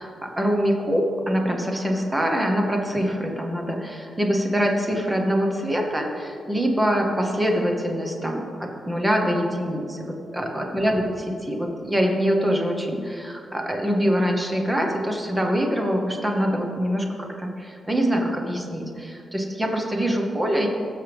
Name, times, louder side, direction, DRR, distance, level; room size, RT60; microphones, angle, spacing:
voice 1, 0.0-20.7, equal, 10° right, 1 dB, 1.0 m, -24 dB
16.0 x 6.6 x 3.5 m, 2.5 s
wide cardioid pair, 180°, 0 cm